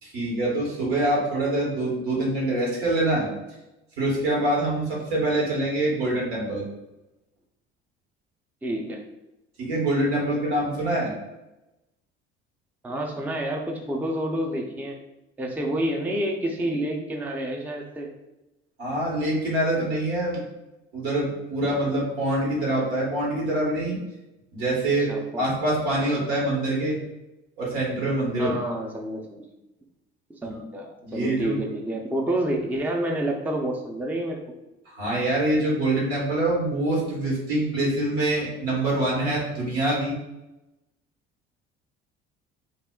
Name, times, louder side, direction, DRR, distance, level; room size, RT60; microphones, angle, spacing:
voice 1, 0.0-3.3 4.0-6.6 9.6-11.1 18.8-20.4 20.9-24.0 24.5-25.1 25.4-27.0 27.6-28.5 30.4-30.6 31.0-31.6 34.9-40.2, right 1 dB, 80° right, -3 dB, 1.2 m, -25 dB
voice 2, 8.6-9.0 12.8-15.0 15.4-18.1 25.1-25.5 28.4-29.4 30.3-34.4, right 1 dB, 5° right, 1 dB, 0.5 m, -29 dB
2.3 x 2.0 x 3.6 m, 0.97 s
hypercardioid pair, 60°, 31 cm